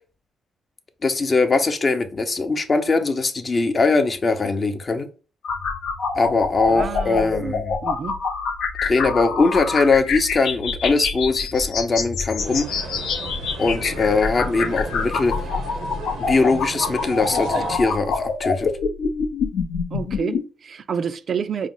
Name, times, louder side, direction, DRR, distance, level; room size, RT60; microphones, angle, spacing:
voice 1, 1.0-5.1 6.1-7.8 8.8-12.8 13.6-15.3 16.2-18.7, left 3 dB, 40° left, 0.6 m, -21 dB
sound 1, 5.4-20.4, left 5 dB, 80° left, 0.6 m, -26 dB
voice 2, 6.7-7.5 7.8-8.2 19.9-21.7, right 7 dB, 55° right, 0.3 m, -29 dB
sound 2, 12.4-17.8, right 4 dB, 85° right, 0.7 m, -34 dB
4.8 x 2.0 x 3.8 m
cardioid pair, 65°, 0 cm